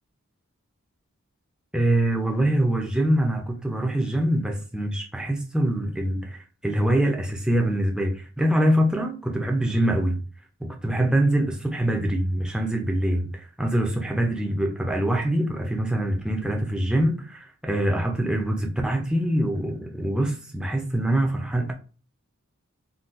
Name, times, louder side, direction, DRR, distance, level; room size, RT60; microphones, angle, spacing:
voice 1, 1.7-10.2 10.6-21.7, right 1 dB, 5° right, 0.4 m, -24 dB
3.8 x 2.2 x 2.4 m
head